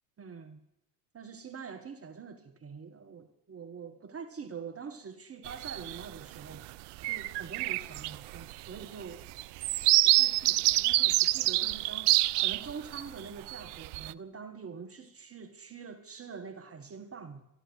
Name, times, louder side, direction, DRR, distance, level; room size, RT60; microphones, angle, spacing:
voice 1, 0.2-0.6 1.1-9.3 10.0-17.4, right 6 dB, 30° right, 1.4 m, -45 dB
sound 1, 5.5-6.1 6.5-6.7 7.0-13.0 13.5-14.1, right 19 dB, 55° right, 0.6 m, -27 dB
13.0 x 11.0 x 8.0 m
hypercardioid pair, 75°, 50 cm